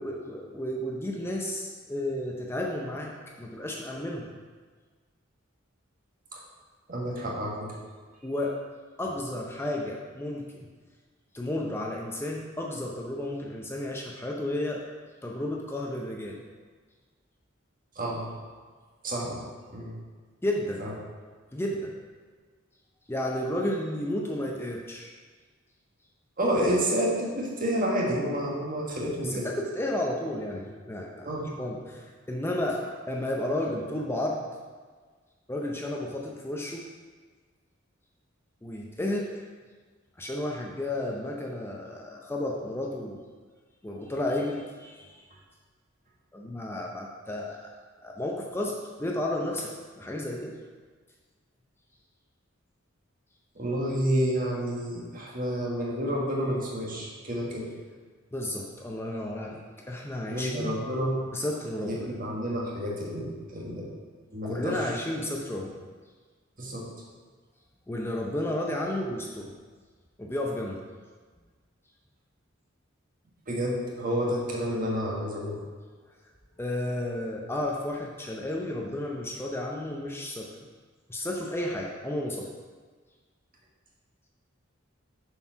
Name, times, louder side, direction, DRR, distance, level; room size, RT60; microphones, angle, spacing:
voice 1, 0.0-4.3 8.2-8.6 9.0-10.7 11.3-14.8 15.2-16.4 20.4-20.9 21.5-22.0 23.1-25.1 29.2-34.5 35.5-36.9 38.6-39.4 40.2-43.2 43.8-45.2 46.3-47.7 48.0-50.6 58.3-60.8 61.3-62.1 64.4-65.8 67.9-69.5 70.2-70.8 76.6-80.6 81.1-82.5, left 1 dB, 10° left, -1 dB, 0.6 m, -32 dB
voice 2, 6.9-7.7 17.9-18.4 19.0-19.4 19.7-19.9 20.8-20.9 26.4-29.5 31.2-31.5 53.5-57.7 60.3-61.2 61.9-63.9 64.3-64.8 66.6-66.9 73.5-75.6, equal, 45° right, -3 dB, 1.7 m, -29 dB
7.1 x 4.6 x 5.7 m, 1.5 s
head